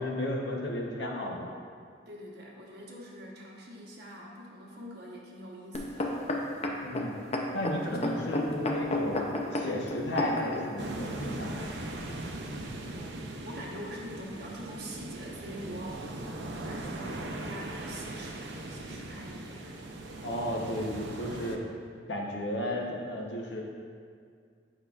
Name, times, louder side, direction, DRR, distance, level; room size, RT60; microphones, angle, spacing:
voice 1, 0.0-1.5 6.8-7.1 7.5-11.7 20.2-21.6 22.1-23.6, left 1 dB, 75° left, -1 dB, 0.9 m, -33 dB
voice 2, 2.1-6.1 7.9-8.2 12.9-16.3 16.6-19.7, equal, 60° right, -3 dB, 1.1 m, -44 dB
sound 1, 5.7-10.6 11.3-11.4, left 1 dB, 35° left, 0.6 m, -31 dB
sound 2, 10.8-21.6, right 2 dB, 85° right, 0.6 m, -40 dB
8.9 x 5.4 x 2.4 m, 2.2 s
head